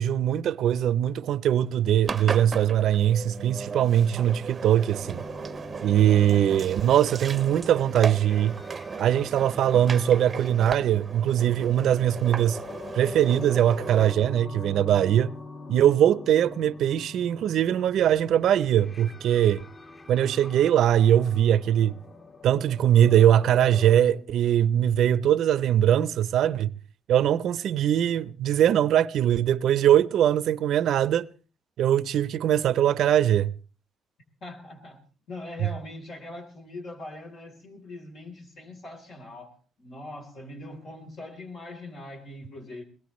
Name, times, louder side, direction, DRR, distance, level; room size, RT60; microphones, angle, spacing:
voice 1, 0.0-5.2 5.8-8.6 9.0-12.6 12.9-15.3 15.7-19.6 20.1-22.0 22.4-26.7 27.1-31.3 31.8-33.5, right 10 dB, 75° right, 0.7 m, -21 dB
Engine, 2.0-14.1, right 5 dB, 40° right, 0.7 m, -36 dB
sound 1, 5.0-24.0, left 3 dB, 35° left, 1.7 m, -44 dB
voice 2, 34.4-35.0 35.3-42.8, left 2 dB, 65° left, 3.8 m, -41 dB
21.5 x 18.5 x 3.2 m
cardioid pair, 90°, 0 cm